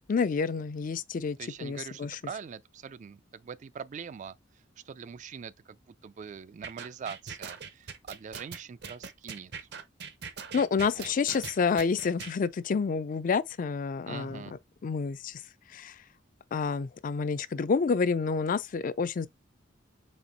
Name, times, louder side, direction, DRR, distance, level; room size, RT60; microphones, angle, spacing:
voice 1, 0.1-2.2 10.5-14.4 14.8-15.4 15.7-15.9 16.5-19.3, left 5 dB, 45° left, 0.4 m, -29 dB
voice 2, 1.4-4.4 4.8-9.7 10.8-11.4 14.0-14.6, right 6 dB, 40° right, 0.3 m, -43 dB
sound 1, 6.6-12.3, right 6 dB, 60° right, 0.7 m, -41 dB
4.3 x 2.8 x 4.1 m
head